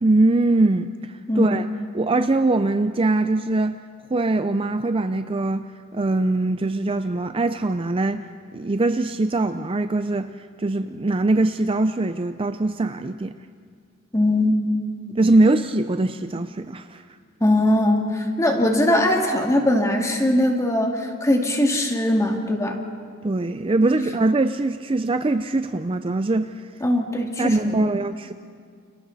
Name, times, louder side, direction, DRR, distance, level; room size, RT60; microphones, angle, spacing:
voice 1, 0.0-1.6 1.9-3.8 4.1-8.2 8.5-10.3 10.6-13.3 15.2-17.0 23.2-26.7 27.4-28.3, right 2 dB, 25° right, 0.5 m, -22 dB
voice 2, 14.1-14.6 15.1-15.2 17.4-22.8 26.8-27.9, left 1 dB, 15° left, 2.4 m, -21 dB
30.0 x 29.5 x 4.1 m
head